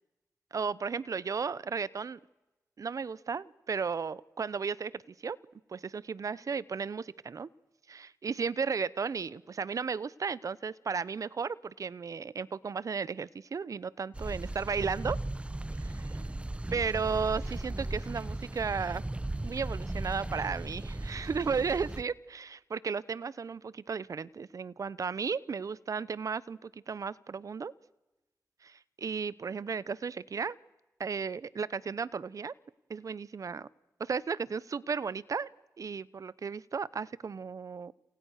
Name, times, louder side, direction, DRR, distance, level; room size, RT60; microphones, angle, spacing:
voice 1, 0.5-2.2 2.8-5.4 5.7-7.5 7.9-15.2 15.8-16.2 16.7-19.0 19.4-27.7 28.6-30.6 31.0-32.5 32.9-33.7 34.0-35.5 35.8-37.9, right 5 dB, 60° right, 21 dB, 0.9 m, -34 dB
sound 1, 14.1-22.0, right 2 dB, 20° right, 1.1 m, -37 dB
29.0 x 29.0 x 6.6 m, 1.0 s
cardioid pair, 65°, 6 cm